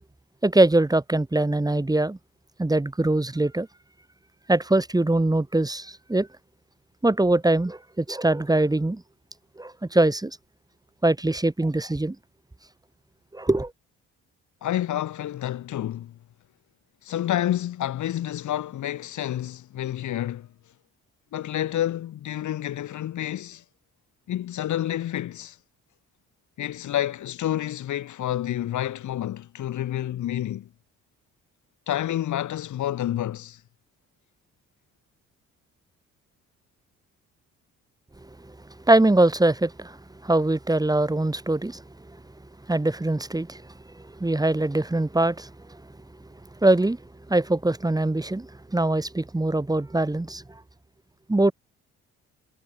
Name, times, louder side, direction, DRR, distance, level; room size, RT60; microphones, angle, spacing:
voice 1, 0.4-2.2 2.6-3.7 4.5-6.3 7.0-9.0 9.6-10.3 11.0-12.2 13.3-13.7 38.9-40.0 40.2-41.8 42.7-43.6 44.1-45.5 46.6-47.0 47.3-50.4 51.3-51.5, right 2 dB, 10° right, 2.6 m, -22 dB
voice 2, 14.6-16.2 17.0-20.5 21.3-23.6 24.3-25.6 26.6-30.7 31.9-33.6, left 12 dB, 75° left, 4.4 m, -29 dB
cardioid pair, 90°, 30 cm